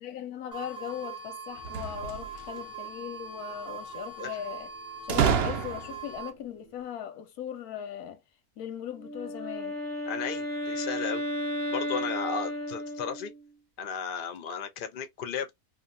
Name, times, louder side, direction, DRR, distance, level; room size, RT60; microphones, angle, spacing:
voice 1, 0.0-4.7 5.0-8.2 8.6-9.8, left 9 dB, 90° left, 1.1 m, -39 dB
sound 1, 0.5-6.3, right 5 dB, 5° right, 0.9 m, -41 dB
sound 2, 1.6-2.6 5.1-6.1, right 7 dB, 85° right, 0.5 m, -28 dB
Wind instrument woodwind instrument, 8.9-13.5, equal, 45° right, 0.9 m, -33 dB
voice 2, 10.1-11.2 11.7-13.3 13.8-15.5, left 6 dB, 60° left, 0.5 m, -34 dB
2.7 x 2.3 x 2.5 m
omnidirectional pair, 1.6 m